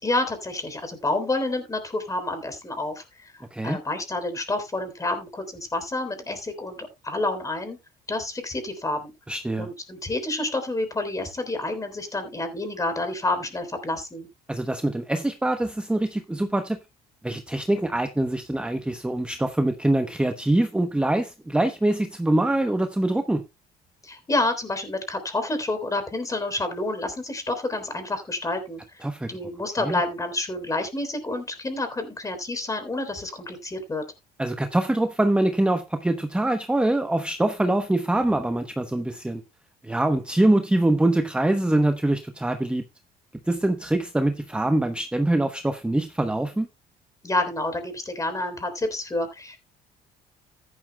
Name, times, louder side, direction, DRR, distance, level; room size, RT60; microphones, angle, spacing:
voice 1, 0.0-3.3 3.6-7.8 8.1-9.1 9.6-14.3 24.0-34.0 47.2-49.6, left 2 dB, 20° left, 3.5 m, -29 dB
voice 2, 9.3-9.7 14.5-16.8 17.2-23.4 29.0-29.4 29.8-30.0 34.4-39.4 39.8-42.8 43.5-46.7, right 1 dB, 5° right, 0.9 m, -24 dB
14.0 x 11.0 x 2.2 m
cardioid pair, 110°, 17 cm